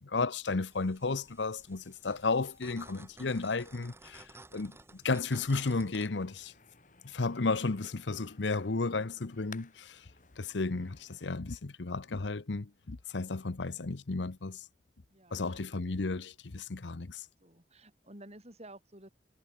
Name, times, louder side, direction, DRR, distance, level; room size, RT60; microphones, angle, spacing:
voice 1, 0.0-6.5 7.0-10.0 10.4-14.6 15.3-17.3, left 3 dB, 80° left, 0.9 m, -33 dB
sound 1, 0.6-6.1, right 2 dB, 15° right, 5.5 m, -55 dB
sound 2, 6.0-11.3, left 5 dB, 45° left, 4.2 m, -58 dB
voice 2, 15.1-15.6 17.4-19.1, right 1 dB, 35° right, 7.7 m, -52 dB
head